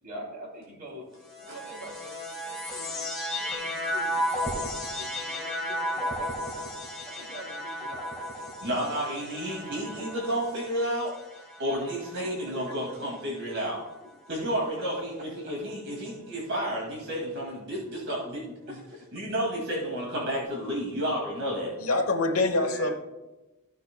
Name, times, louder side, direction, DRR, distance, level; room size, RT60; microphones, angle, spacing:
voice 1, 0.0-1.0 1.4-3.0 3.4-6.8 7.1-8.6 9.0-10.4 12.5-12.7 15.4-15.5 18.6-18.8 21.6-21.8 22.4-22.9, equal, 40° right, -3 dB, 3.0 m, -45 dB
sound 1, 1.2-12.7 13.5-14.2, equal, 5° left, 1.7 m, -34 dB
voice 2, 8.6-11.1 11.6-13.8 14.3-18.6 19.1-21.7, equal, 55° right, -4 dB, 2.4 m, -31 dB
voice 3, 21.8-22.9, left 2 dB, 75° left, 6 dB, 1.1 m, -25 dB
15.5 x 6.6 x 2.3 m, 1.0 s
head